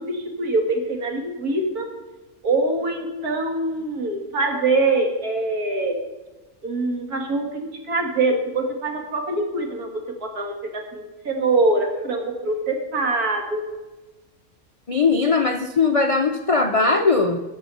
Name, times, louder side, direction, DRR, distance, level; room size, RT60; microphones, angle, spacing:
voice 1, 0.0-1.9 2.4-6.0 6.6-9.9 10.2-13.6, right 2 dB, 80° right, 3 dB, 2.2 m, -24 dB
voice 2, 14.9-17.4, left 4 dB, 50° left, 4 dB, 0.4 m, -19 dB
13.0 x 6.9 x 5.5 m, 1.2 s
omnidirectional pair, 1.6 m